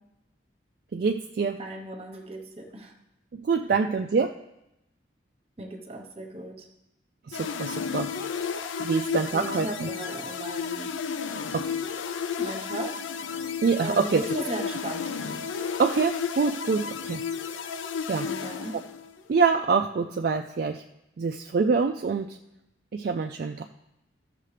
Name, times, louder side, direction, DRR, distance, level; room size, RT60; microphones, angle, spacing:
voice 1, 0.9-1.6 3.3-4.3 7.3-8.1 8.8-9.9 11.5-11.8 13.6-14.2 15.8-17.2 18.1-18.3 18.7-18.8 19.3-20.8 21.2-22.4 22.9-23.7, right 5 dB, 50° right, 5 dB, 0.3 m, -25 dB
voice 2, 1.6-2.9 5.6-6.7 9.3-10.9 12.4-13.0 13.4-13.5 13.8-15.1 18.2-18.7, right 1 dB, 30° right, 4 dB, 1.0 m, -37 dB
sound 1, 7.3-19.2, left 6 dB, 85° left, 0.5 m, -33 dB
14.0 x 6.6 x 3.3 m, 0.89 s
head